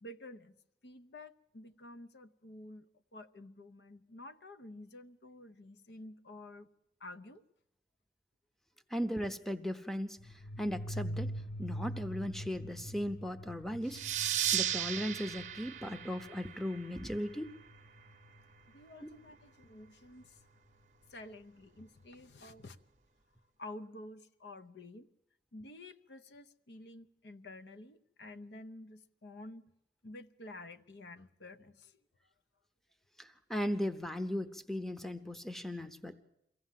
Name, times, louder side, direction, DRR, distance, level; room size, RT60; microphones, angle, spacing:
voice 1, 0.0-0.5 0.8-2.9 3.1-6.7 7.0-7.4 18.7-20.3 21.1-22.8 23.6-25.1 25.5-29.6 30.0-31.9, left 2 dB, 75° left, 0.8 m, -50 dB
voice 2, 8.9-11.3 11.6-14.0 14.5-17.5 19.0-19.1 33.2-36.2, equal, ahead, 0.7 m, -37 dB
sound 1, 10.2-18.6, equal, 35° left, 0.8 m, -44 dB
sound 2, 13.9-17.2, right 11 dB, 45° right, 0.7 m, -35 dB
23.0 x 16.0 x 7.5 m
head